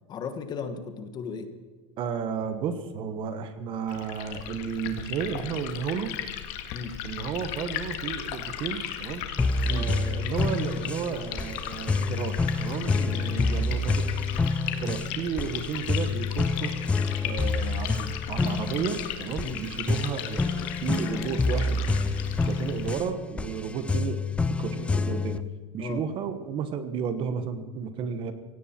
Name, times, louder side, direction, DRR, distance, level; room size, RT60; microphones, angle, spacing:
voice 1, 0.1-1.5 6.7-7.0 9.6-9.9 12.9-13.1 19.4-19.6 25.8-26.0, left 6 dB, 25° left, 9 dB, 1.3 m, -36 dB
voice 2, 2.0-6.2 7.0-9.4 9.7-14.1 14.8-16.8 17.2-21.8 22.4-24.2 24.6-25.4 25.7-28.3, right 7 dB, 35° right, 11 dB, 1.2 m, -33 dB
Liquid, 3.9-23.0, left 10 dB, 50° left, 1.8 m, -37 dB
sound 1, 9.4-25.4, left 3 dB, 10° left, 0.4 m, -28 dB
17.0 x 16.5 x 4.4 m, 1.5 s
supercardioid pair, 160°, 15 cm